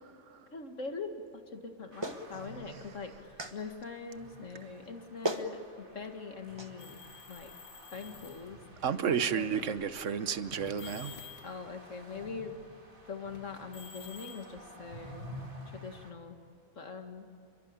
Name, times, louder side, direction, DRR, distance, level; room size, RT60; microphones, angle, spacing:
voice 1, 0.5-7.0 7.3-7.5 7.9-9.7 11.4-12.6 13.0-15.3 15.7-16.4 16.8-17.3, left 4 dB, 75° left, 2.2 m, -43 dB
sound 1, 1.9-16.1, equal, 40° right, 2.9 m, -51 dB
Clapping, 2.0-2.2 3.4-3.6 4.8-4.9 5.2-5.5 6.6-6.7, equal, 20° right, 1.4 m, -34 dB
sound 2, 6.8-8.5 9.4-9.7 10.5-11.6 13.3-15.4, left 6 dB, 55° left, 1.7 m, -50 dB
voice 2, 8.8-11.2, right 7 dB, 75° right, 1.3 m, -32 dB
29.0 x 22.5 x 8.8 m
omnidirectional pair, 1.3 m